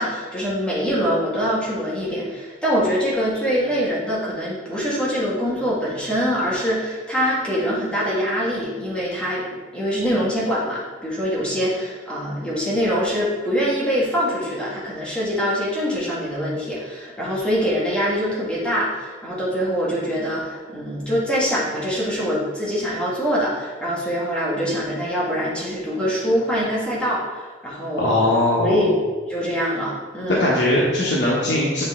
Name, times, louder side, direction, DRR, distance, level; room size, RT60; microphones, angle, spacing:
voice 1, 0.0-9.4 9.7-28.3 28.6-28.9 29.3-30.4, equal, 5° left, -8 dB, 1.8 m, -24 dB
voice 2, 28.0-28.8 30.3-31.9, left 1 dB, 75° left, -5 dB, 1.1 m, -20 dB
8.0 x 4.3 x 3.7 m, 1.4 s
head